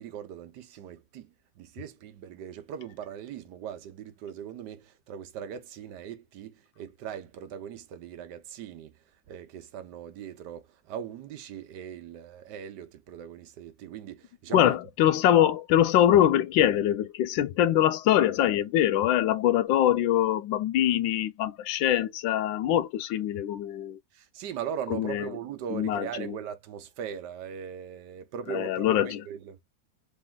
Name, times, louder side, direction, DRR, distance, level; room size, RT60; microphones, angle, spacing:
voice 1, 0.0-8.9 9.3-14.7 24.1-29.6, right 9 dB, 65° right, 1.3 m, -40 dB
voice 2, 14.5-24.0 24.9-25.3 25.7-26.4 28.5-29.2, left 11 dB, 80° left, 1.3 m, -23 dB
3.7 x 3.2 x 3.6 m
omnidirectional pair, 2.1 m